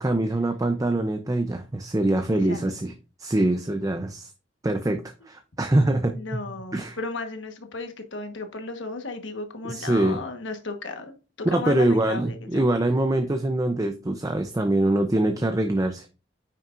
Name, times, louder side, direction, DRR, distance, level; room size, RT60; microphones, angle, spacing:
voice 1, 0.0-2.9 3.2-4.3 4.6-5.0 5.3-6.1 6.7-7.0 9.6-10.2 11.5-16.1, right 1 dB, 20° right, 6 dB, 0.6 m, -24 dB
voice 2, 2.3-2.7 6.1-12.6, left 3 dB, 80° left, 6 dB, 1.3 m, -35 dB
9.1 x 5.9 x 2.5 m, 0.33 s
head